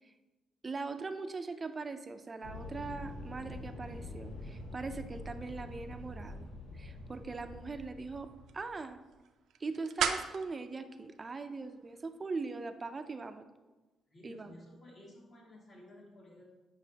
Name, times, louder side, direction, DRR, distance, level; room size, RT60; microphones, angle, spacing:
voice 1, 0.6-8.3 8.5-9.0 9.6-13.4 14.2-14.6, right 3 dB, 30° right, 8 dB, 0.5 m, -41 dB
sound 1, 2.4-8.9, left 1 dB, 80° left, 1.5 m, -46 dB
sound 2, 7.0-12.2, right 7 dB, 75° right, 0.5 m, -41 dB
voice 2, 14.1-16.5, left 1 dB, 55° left, -5 dB, 2.2 m, -54 dB
9.0 x 5.4 x 2.8 m, 1.2 s
cardioid pair, 90°, 0 cm